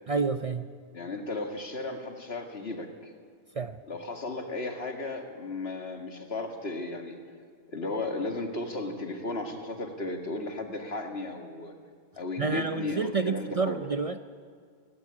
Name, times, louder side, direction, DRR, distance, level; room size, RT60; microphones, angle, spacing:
voice 1, 0.1-0.7 3.5-3.8 12.4-14.2, right 4 dB, 40° right, 10 dB, 0.6 m, -29 dB
voice 2, 0.9-3.1 3.9-7.2 7.7-11.7 12.2-13.8, left 2 dB, 75° left, 5 dB, 2.2 m, -35 dB
17.0 x 16.0 x 9.7 m, 2.1 s
omnidirectional pair, 1.1 m